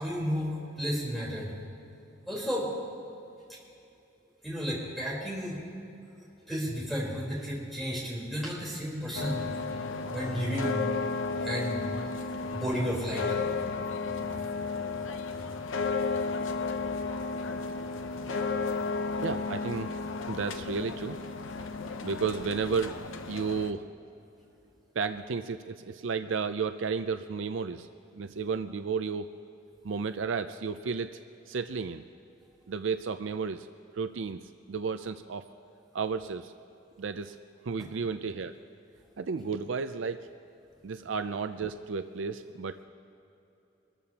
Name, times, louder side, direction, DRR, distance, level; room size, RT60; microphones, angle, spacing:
voice 1, 0.0-1.5 2.3-2.7 4.4-5.6 6.5-9.5 10.1-10.9 11.4-11.9 12.5-13.3 16.9-17.2 18.6-18.7 37.8-37.9, equal, ahead, -6 dB, 3.8 m, -33 dB
Street ambience and Mosteiro de São Bento's bell, 9.1-23.7, left 4 dB, 80° left, 0.8 m, -33 dB
voice 2, 19.2-19.9 20.3-21.2 22.0-23.0 23.3-23.8 25.0-27.9 28.2-29.3 29.8-31.1 31.5-32.0 32.7-33.7 33.9-34.4 34.7-35.4 35.9-36.5 37.0-37.4 37.6-38.6 39.2-40.3 40.8-42.8, right 5 dB, 75° right, 10 dB, 0.5 m, -32 dB
24.5 x 14.0 x 2.9 m, 2.8 s
head